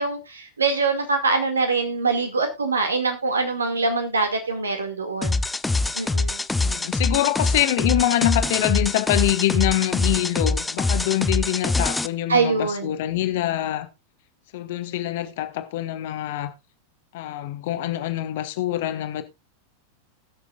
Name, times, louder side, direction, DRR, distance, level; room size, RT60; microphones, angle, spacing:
voice 1, 0.0-5.4 5.9-6.4 12.3-13.0, right 4 dB, 75° right, 2.2 m, -24 dB
sound 1, 5.2-12.1, left 3 dB, 10° left, 0.5 m, -24 dB
voice 2, 6.6-13.9 14.5-16.5 17.1-19.2, left 14 dB, 55° left, 1.3 m, -25 dB
20.0 x 6.7 x 2.4 m
figure-of-eight pair, 90°, 0 cm